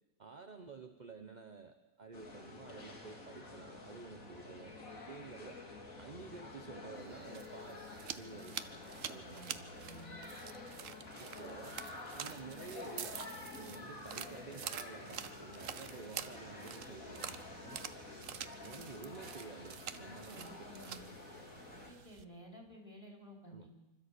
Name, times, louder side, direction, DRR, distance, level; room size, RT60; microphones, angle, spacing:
voice 1, 0.2-4.8 5.0-5.6 5.9-8.8 9.1-9.5 11.2-11.8 12.1-13.2 13.6-17.9 18.4-20.7 23.5-23.7, right 4 dB, 35° right, 6 dB, 1.0 m, -51 dB
sound 1, 2.1-21.9, left 2 dB, 65° left, 3.2 m, -49 dB
sound 2, 7.0-22.2, right 9 dB, 65° right, 1.2 m, -48 dB
voice 2, 9.3-10.2 20.3-21.0 21.6-23.7, right 1 dB, 15° left, 1 dB, 4.2 m, -54 dB
25.5 x 13.0 x 8.4 m, 1.0 s
omnidirectional pair, 1.5 m